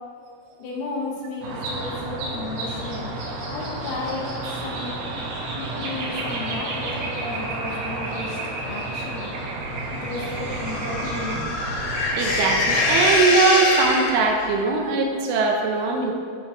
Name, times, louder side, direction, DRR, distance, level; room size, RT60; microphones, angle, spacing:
voice 1, 0.6-3.1 3.5-4.9 5.5-9.3 9.9-11.5, left 3 dB, 90° left, -3 dB, 4.5 m, -33 dB
sound 1, 1.4-13.0, right 2 dB, 60° right, 2.9 m, -31 dB
sound 2, 10.2-14.5, left 3 dB, 65° left, 2.9 m, -24 dB
voice 2, 12.1-16.1, right 4 dB, 80° right, 2 dB, 3.3 m, -21 dB
12.5 x 6.2 x 4.7 m, 2.3 s
omnidirectional pair, 5.7 m